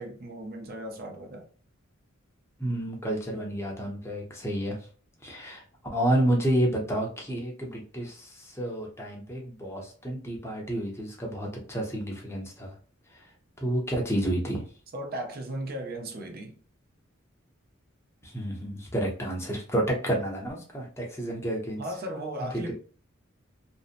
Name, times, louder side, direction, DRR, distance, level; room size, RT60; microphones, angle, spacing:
voice 1, 0.0-1.5 14.9-16.6 21.8-22.7, right 1 dB, 50° right, 0.6 m, -36 dB
voice 2, 2.6-4.8 5.2-5.6 5.9-12.7 13.6-14.6 18.2-21.8 22.7-22.8, right 1 dB, 15° left, 0.6 m, -30 dB
2.7 x 2.0 x 2.5 m
head